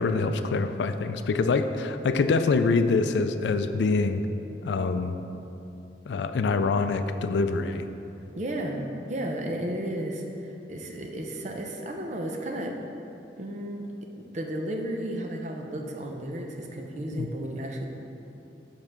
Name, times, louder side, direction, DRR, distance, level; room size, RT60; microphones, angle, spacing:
voice 1, 0.0-4.2 4.6-5.2 6.1-7.9 17.2-17.3, left 4 dB, 80° left, 9 dB, 0.3 m, -25 dB
voice 2, 8.3-12.8 13.4-13.9 14.2-17.9, right 1 dB, 40° right, 2 dB, 0.6 m, -33 dB
5.4 x 4.8 x 5.9 m, 2.9 s
head